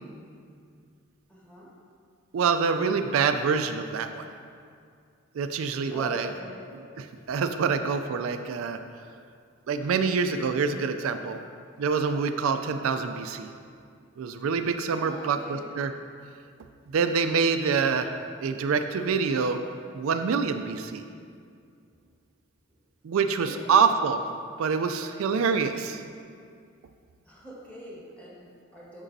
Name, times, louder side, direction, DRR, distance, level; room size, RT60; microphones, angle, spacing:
voice 1, 1.3-1.7 5.9-6.6 15.0-15.6 23.4-23.8 27.2-29.0, equal, 10° left, -7 dB, 1.6 m, -42 dB
voice 2, 2.3-4.3 5.3-6.3 6.7-8.8 9.7-11.4 11.8-13.5 14.2-15.9 16.9-19.6 19.9-21.0 23.0-24.2 24.6-26.0, right 5 dB, 80° right, 8 dB, 0.4 m, -26 dB
9.8 x 6.1 x 2.7 m, 2.3 s
head